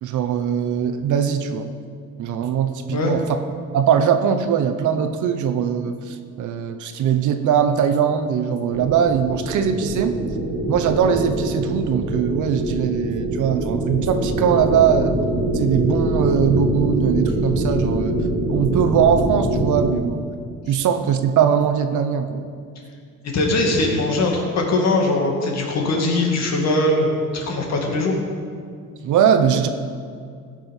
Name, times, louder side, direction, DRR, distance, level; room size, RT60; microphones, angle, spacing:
voice 1, 0.0-1.7 2.2-3.2 3.7-10.2 10.7-15.1 15.5-18.2 18.5-20.2 20.7-22.4 29.0-29.7, right 8 dB, 70° right, 8 dB, 0.8 m, -20 dB
sound 1, 8.7-20.0, right 1 dB, 50° right, 1.8 m, -24 dB
voice 2, 23.2-27.1 27.3-28.2, left 2 dB, 55° left, 0 dB, 2.3 m, -21 dB
16.5 x 6.0 x 5.4 m, 2.2 s
cardioid pair, 130°, 31 cm